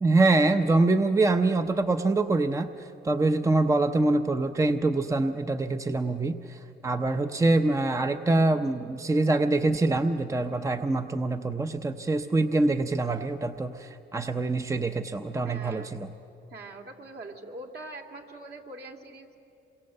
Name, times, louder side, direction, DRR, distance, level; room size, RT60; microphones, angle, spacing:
voice 1, 0.0-16.1, right 2 dB, 15° right, 7 dB, 0.8 m, -25 dB
voice 2, 15.4-15.9 16.5-19.4, right 2 dB, 55° right, 2 dB, 2.6 m, -43 dB
27.0 x 23.0 x 7.9 m, 2.9 s
cardioid pair, 90°, 20 cm